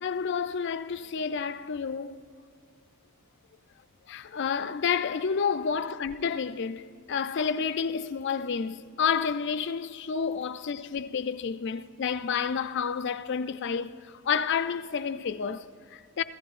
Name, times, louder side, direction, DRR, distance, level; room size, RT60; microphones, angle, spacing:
voice 1, 0.0-2.2 4.1-16.2, left 6 dB, 55° left, 0.4 m, -30 dB
25.5 x 15.0 x 2.5 m
head